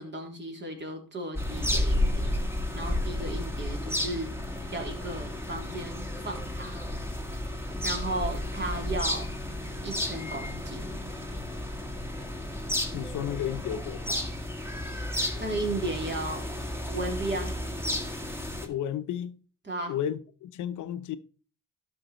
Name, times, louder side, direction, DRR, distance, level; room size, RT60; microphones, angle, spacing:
voice 1, 0.0-2.2 2.7-4.3 4.7-6.9 7.8-9.3 9.8-11.0 15.4-16.4 16.9-17.5 19.6-19.9, right 2 dB, 35° right, 3.6 m, -35 dB
sound 1, 1.4-18.7, left 1 dB, 10° right, 2.0 m, -32 dB
voice 2, 12.9-14.3 18.6-19.4 19.9-21.2, left 10 dB, 80° left, 0.9 m, -33 dB
12.0 x 6.1 x 4.4 m
cardioid pair, 90°, 30 cm